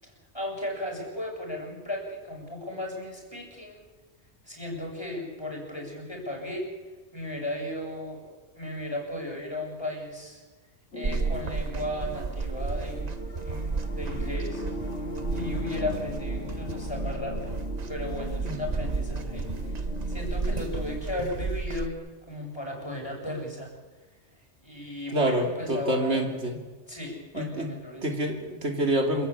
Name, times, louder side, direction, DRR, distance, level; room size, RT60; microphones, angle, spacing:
voice 1, 0.0-3.8 4.5-6.7 7.1-10.4 10.9-13.1 13.4-14.6 15.3-17.5 17.9-19.8 20.1-21.9 22.3-23.7 24.6-26.3 26.9-28.1, left 1 dB, 20° left, 0 dB, 7.2 m, -35 dB
sound 1, 10.9-21.0, left 2 dB, 85° left, 2.3 m, -39 dB
sound 2, 11.0-21.9, right 4 dB, 40° right, 0.9 m, -32 dB
voice 2, 18.4-18.7 25.1-26.6 27.3-27.7 28.0-29.3, right 1 dB, 70° right, 2 dB, 3.1 m, -27 dB
27.5 x 16.0 x 8.6 m, 1.3 s
omnidirectional pair, 1.2 m